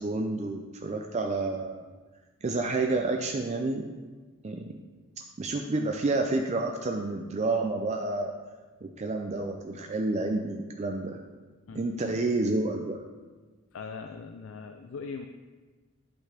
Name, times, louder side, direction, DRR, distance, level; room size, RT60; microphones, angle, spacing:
voice 1, 0.0-1.9 2.4-3.9 4.4-4.7 5.4-8.3 8.8-11.2 11.7-13.0, right 2 dB, 35° right, 3 dB, 0.4 m, -29 dB
voice 2, 13.7-15.3, left 5 dB, 65° left, 6 dB, 0.4 m, -40 dB
11.0 x 5.7 x 3.4 m, 1.3 s
head